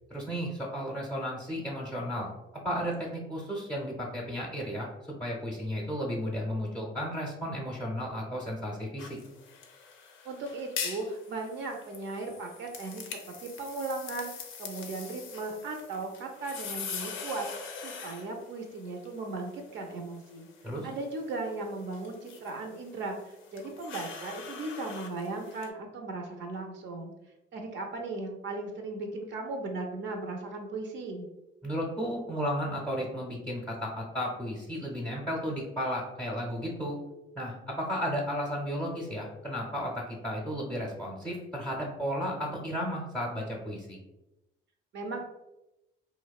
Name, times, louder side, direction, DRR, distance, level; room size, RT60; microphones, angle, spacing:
voice 1, 0.1-2.3 2.6-4.9 5.2-9.2 20.6-20.9 31.6-37.0 37.3-44.0, equal, 5° left, -4 dB, 0.5 m, -34 dB
sound 1, 9.0-25.7, left 6 dB, 90° left, 0.4 m, -43 dB
voice 2, 10.2-17.5 17.8-20.5 20.8-27.1 27.5-31.3 44.9-45.2, right 3 dB, 65° right, 3 dB, 0.4 m, -37 dB
2.6 x 2.0 x 2.3 m, 0.94 s
cardioid pair, 90°, 20 cm